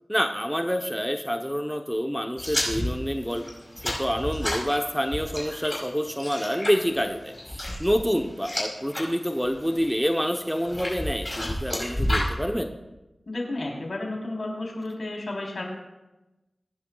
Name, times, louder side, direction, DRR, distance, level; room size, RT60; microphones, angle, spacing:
voice 1, 0.1-3.4 3.8-12.7, equal, ahead, 4 dB, 0.9 m, -27 dB
sound 1, 2.4-9.1 9.4-9.9 10.5-12.3, left 1 dB, 25° left, 5.2 m, -30 dB
voice 2, 13.3-15.6, left 2 dB, 75° left, -1 dB, 3.6 m, -32 dB
23.0 x 10.5 x 2.3 m, 1.0 s
cardioid pair, 45°, 0 cm